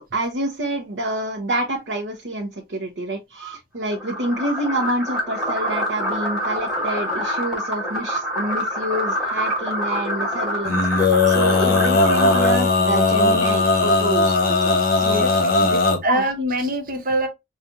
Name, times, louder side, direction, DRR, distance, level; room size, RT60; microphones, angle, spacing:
voice 1, 0.0-15.8 16.1-16.2, right 1 dB, 85° right, 0.8 m, -27 dB
sound 1, 3.9-12.5, equal, 5° right, 2.0 m, -26 dB
Male singing, 10.6-16.0, left 3 dB, 55° left, 1.1 m, -18 dB
voice 2, 15.1-15.6 16.0-17.3, right 1 dB, 50° right, 1.0 m, -24 dB
5.7 x 2.4 x 2.6 m
head